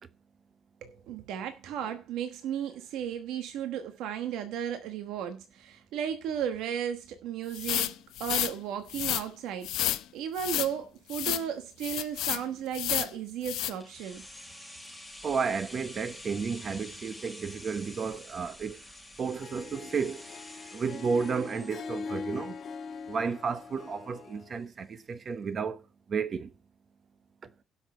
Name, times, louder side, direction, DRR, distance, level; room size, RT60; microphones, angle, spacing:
voice 1, 0.8-9.7 10.1-14.2, right 9 dB, 85° right, 1.1 m, -35 dB
sound 1, 7.5-8.5 8.9-9.2 9.6-10.0 10.4-10.7 11.1-11.4 11.8-12.4 12.7-13.1 13.4-13.7, left 14 dB, 85° left, 0.7 m, -30 dB
sound 2, 13.8-23.6 23.9-24.0, left 1 dB, ahead, 1.5 m, -48 dB
voice 2, 15.2-18.8 19.2-20.2 20.7-22.6 23.1-25.8 26.1-26.5, right 5 dB, 30° right, 0.9 m, -32 dB
Harp, 19.2-24.6, left 5 dB, 40° left, 1.0 m, -42 dB
16.5 x 6.4 x 4.4 m
cardioid pair, 175°, 0 cm